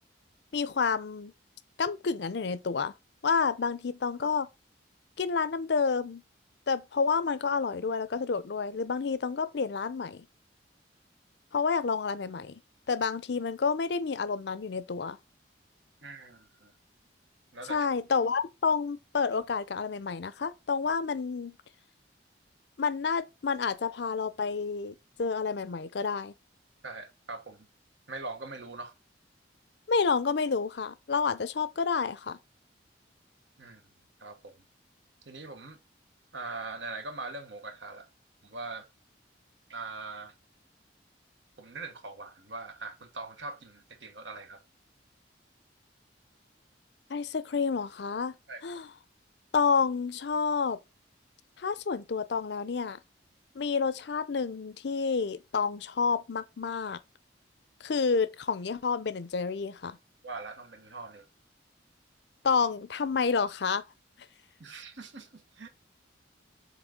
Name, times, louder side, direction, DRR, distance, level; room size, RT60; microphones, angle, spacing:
voice 1, 0.5-1.3 1.8-2.9 3.2-4.5 5.2-6.2 6.7-10.3 11.5-12.6 12.9-15.2 17.7-21.6 22.8-26.3 29.9-32.4 47.1-48.3 48.6-48.9 49.5-50.8 51.6-53.0 53.5-57.0 57.8-60.0 62.4-63.8, left 5 dB, 60° left, 0.5 m, -29 dB
voice 2, 16.0-16.7 17.5-17.9 26.8-27.7 28.1-28.9 33.6-33.8 34.2-34.5 35.2-35.8 36.3-38.1 38.4-38.9 39.7-40.3 41.6-44.6 48.5-48.6 60.2-61.2 64.6-65.7, right 3 dB, 75° right, 1.2 m, -41 dB
7.1 x 4.0 x 3.7 m
head